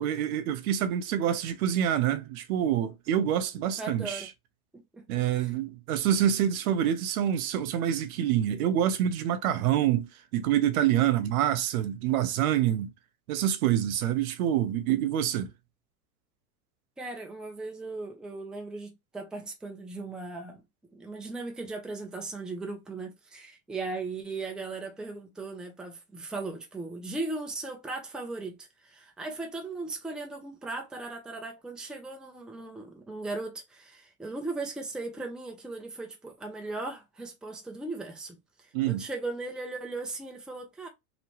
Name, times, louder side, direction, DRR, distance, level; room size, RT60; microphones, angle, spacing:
voice 1, 0.0-4.2 5.1-12.9 13.3-15.5 38.7-39.0, right 10 dB, 70° right, 0.7 m, -26 dB
voice 2, 3.8-4.3 4.7-5.5 17.0-20.6 20.9-40.9, right 3 dB, ahead, 0.5 m, -38 dB
3.0 x 2.1 x 2.8 m
hypercardioid pair, 100°, 45 cm